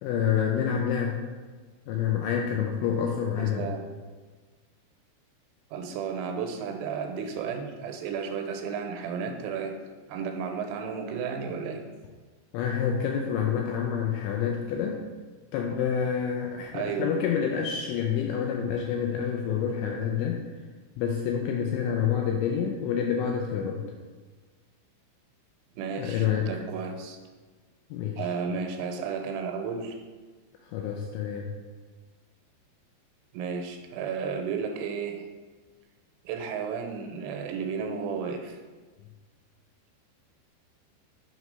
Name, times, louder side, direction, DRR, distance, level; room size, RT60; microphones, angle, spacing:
voice 1, 0.0-1.2 1.9-3.7 12.5-15.0 15.5-20.4 21.0-23.8 26.0-26.5 27.9-28.3 30.7-31.5, left 8 dB, 85° left, 1 dB, 2.6 m, -28 dB
voice 2, 3.4-3.9 5.7-9.8 10.1-11.8 16.7-17.2 25.8-27.2 28.2-30.0 33.3-35.2 36.2-38.6, right 6 dB, 90° right, 4 dB, 3.3 m, -33 dB
7.9 x 3.0 x 5.3 m, 1.4 s
omnidirectional pair, 5.7 m